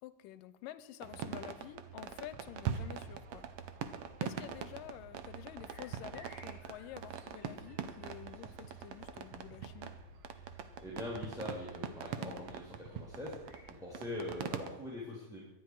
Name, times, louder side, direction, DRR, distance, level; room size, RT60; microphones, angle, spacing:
voice 1, 0.0-3.5 4.2-9.9 12.2-12.5, left 13 dB, 80° left, 15 dB, 2.3 m, -49 dB
sound 1, 1.0-14.7, right 8 dB, 90° right, 1.3 m, -43 dB
sound 2, 1.9-13.6, left 3 dB, 65° right, 8.2 m, -59 dB
voice 2, 10.8-13.4 13.8-15.4, left 1 dB, ahead, -4 dB, 2.8 m, -42 dB
23.5 x 10.0 x 4.8 m, 0.90 s
omnidirectional pair, 4.0 m